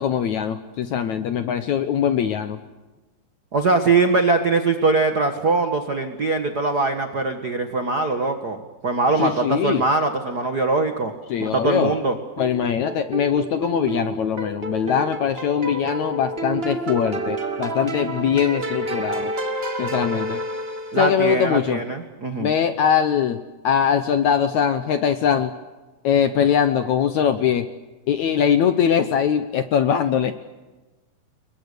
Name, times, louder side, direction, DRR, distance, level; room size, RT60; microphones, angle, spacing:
voice 1, 0.0-2.6 9.2-9.8 11.3-11.9 12.4-19.3 19.8-20.4 21.0-21.8 22.4-23.4 23.6-25.5 26.0-27.7 28.1-30.3, left 8 dB, 70° left, 10 dB, 1.8 m, -21 dB
voice 2, 3.5-11.1 11.4-12.1 20.9-22.5, right 3 dB, 80° right, 6 dB, 0.8 m, -22 dB
sound 1, 12.4-21.3, right 2 dB, 20° right, 1.7 m, -29 dB
30.0 x 22.5 x 6.8 m, 1.2 s
omnidirectional pair, 4.5 m